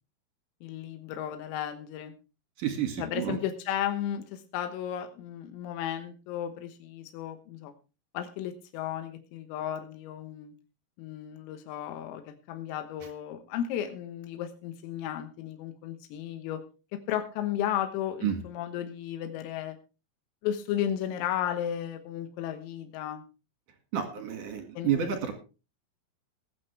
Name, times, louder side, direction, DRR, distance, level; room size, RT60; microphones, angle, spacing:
voice 1, 0.6-2.1 3.0-7.7 8.1-10.5 11.0-16.6 17.1-19.8 20.4-23.2 24.8-25.1, left 10 dB, 85° left, 7 dB, 3.9 m, -34 dB
voice 2, 2.6-3.4 18.2-18.4 23.9-25.3, right 9 dB, 50° right, 5 dB, 2.7 m, -30 dB
21.5 x 8.8 x 3.4 m, 0.32 s
omnidirectional pair, 6.0 m